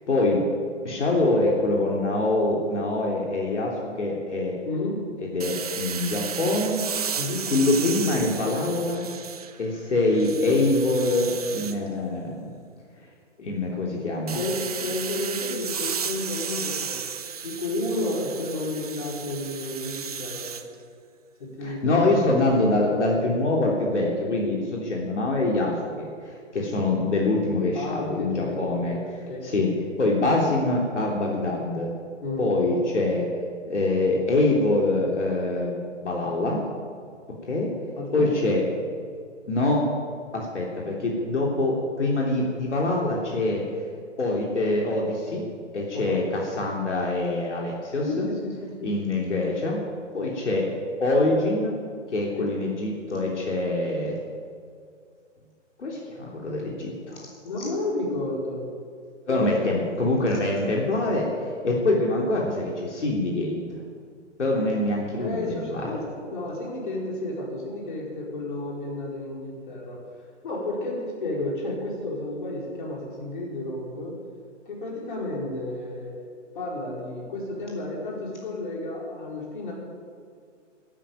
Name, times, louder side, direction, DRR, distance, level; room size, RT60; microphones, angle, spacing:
voice 1, 0.1-0.4 0.8-4.6 5.2-6.8 7.5-9.1 9.6-12.5 13.4-14.4 21.6-29.0 29.4-29.7 30.0-31.9 32.4-33.3 33.6-36.6 37.4-37.7 38.1-38.6 39.5-39.8 40.3-43.6 44.2-45.4 45.7-48.3 48.8-49.8 50.1-50.7 51.0-51.8 52.1-54.2 55.8-57.3 59.3-61.3 61.6-63.6 64.4-65.9, left 2 dB, 70° left, -2 dB, 3.4 m, -24 dB
voice 2, 4.6-5.0 7.2-7.5 14.3-17.0 17.4-20.6 21.4-22.2 27.7-29.5 32.2-32.5 38.0-38.4 45.9-46.2 48.0-48.9 52.4-52.5 57.4-58.7 59.3-59.7 65.2-70.0 70.4-74.2 74.6-76.1 76.5-79.7, left 2 dB, 40° left, -2 dB, 4.7 m, -32 dB
sound 1, 5.4-9.7 10.1-11.8 14.3-20.6, right 7 dB, 30° right, 0.8 m, -34 dB
12.5 x 12.0 x 8.9 m, 2.2 s
hypercardioid pair, 165°, 37 cm